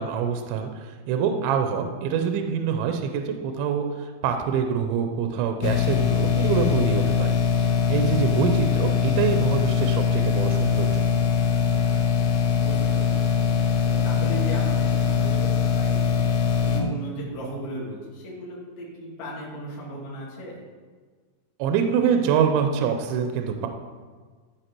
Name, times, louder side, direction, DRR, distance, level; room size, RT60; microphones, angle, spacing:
voice 1, 0.0-7.4 7.9-11.0 21.6-23.7, right 7 dB, 80° right, 5 dB, 2.8 m, -25 dB
sound 1, 5.6-16.8, left 7 dB, 75° left, 2.6 m, -22 dB
voice 2, 12.5-13.5 13.8-16.1 16.6-20.6, right 1 dB, 45° left, -6 dB, 2.4 m, -36 dB
13.5 x 4.6 x 4.5 m, 1.5 s
omnidirectional pair, 5.5 m